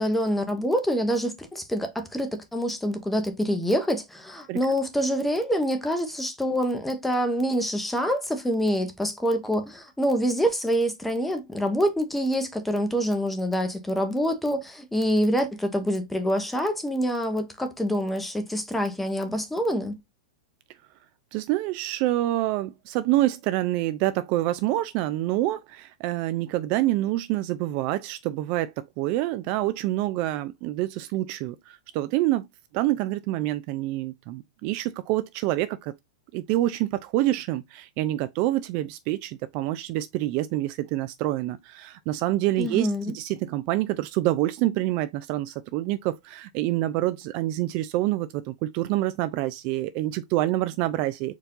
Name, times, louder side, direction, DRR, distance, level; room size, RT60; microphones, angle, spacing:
voice 1, 0.0-20.0 42.6-43.1, equal, 5° left, 0.8 m, -26 dB
voice 2, 21.3-32.5 32.7-35.9 36.3-42.9 43.1-51.4, right 15 dB, 45° right, 0.4 m, -27 dB
4.5 x 2.6 x 3.6 m
hypercardioid pair, 135°, 3 cm